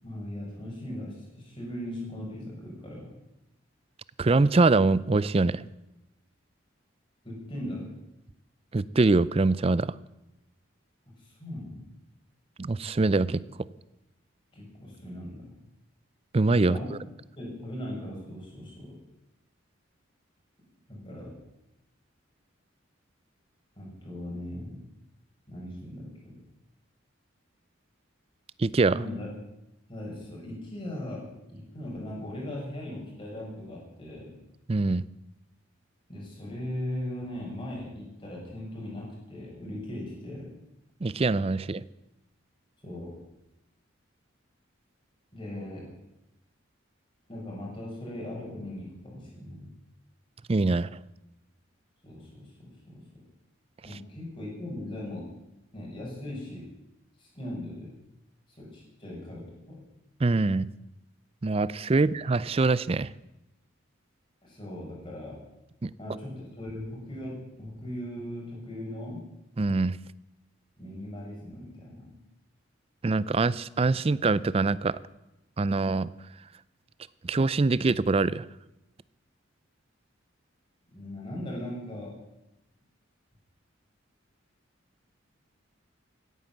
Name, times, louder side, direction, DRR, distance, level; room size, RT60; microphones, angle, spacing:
voice 1, 0.0-3.1 7.2-7.9 11.2-11.8 14.5-15.6 16.6-16.9 17.4-19.0 20.9-21.3 23.8-24.8 25.5-26.3 28.9-29.3 29.9-34.3 36.1-40.5 42.8-43.2 45.3-45.9 47.3-49.7 52.0-53.0 53.8-55.3 55.7-56.7 57.2-57.9 58.6-59.8 62.0-62.1 64.4-65.4 66.0-69.2 70.8-72.1 80.9-82.2, left 1 dB, 25° left, -3 dB, 5.7 m, -39 dB
voice 2, 4.2-5.6 8.7-9.9 12.6-13.4 16.3-17.0 28.6-29.0 34.7-35.0 41.0-41.8 50.5-50.9 60.2-60.7 61.4-63.1 65.8-65.9 69.6-70.0 73.0-75.0 75.6-76.1 77.2-78.4, right 3 dB, 30° right, 19 dB, 0.4 m, -24 dB
17.0 x 9.5 x 7.3 m, 0.92 s
head